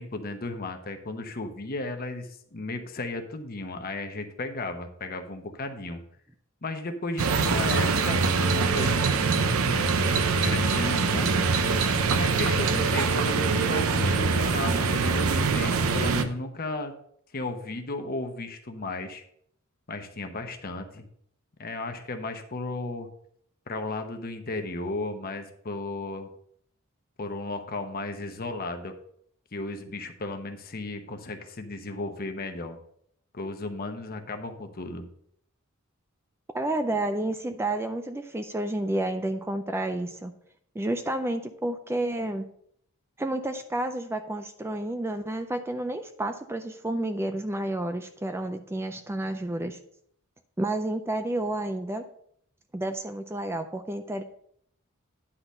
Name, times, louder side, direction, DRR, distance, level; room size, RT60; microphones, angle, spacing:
voice 1, 0.0-6.0 6.6-9.6 10.4-11.4 12.2-16.9 17.3-19.2 19.9-21.1 21.6-23.1 23.7-26.3 27.2-29.0 29.5-32.8 33.3-35.1, left 2 dB, 45° left, 6 dB, 1.0 m, -34 dB
sound 1, 7.2-16.2, right 4 dB, 80° right, 0.7 m, -24 dB
voice 2, 36.5-40.3 40.8-42.4 43.2-49.8 50.6-52.0 52.7-54.2, right 1 dB, 10° right, 7 dB, 0.4 m, -30 dB
10.0 x 3.9 x 5.5 m, 0.67 s
head